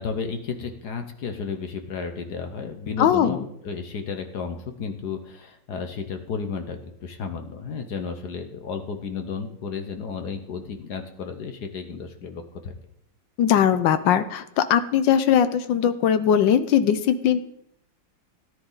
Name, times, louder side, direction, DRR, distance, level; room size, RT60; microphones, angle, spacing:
voice 1, 0.0-12.7, left 5 dB, 60° left, 6 dB, 1.5 m, -33 dB
voice 2, 3.0-3.4 13.4-17.4, left 9 dB, 80° left, 12 dB, 1.4 m, -20 dB
17.0 x 10.0 x 3.9 m, 0.77 s
omnidirectional pair, 2.1 m